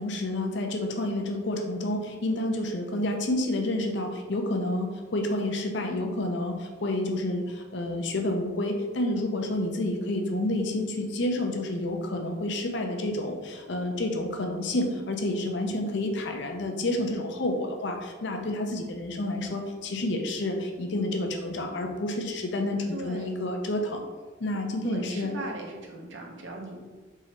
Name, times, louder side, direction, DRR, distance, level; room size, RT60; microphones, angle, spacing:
voice 1, 0.0-24.0 24.4-25.3, left 1 dB, 60° left, 3 dB, 0.6 m, -29 dB
voice 2, 22.9-23.4 24.8-26.8, right 1 dB, 65° right, 0 dB, 0.8 m, -38 dB
3.6 x 3.1 x 4.2 m, 1.4 s
head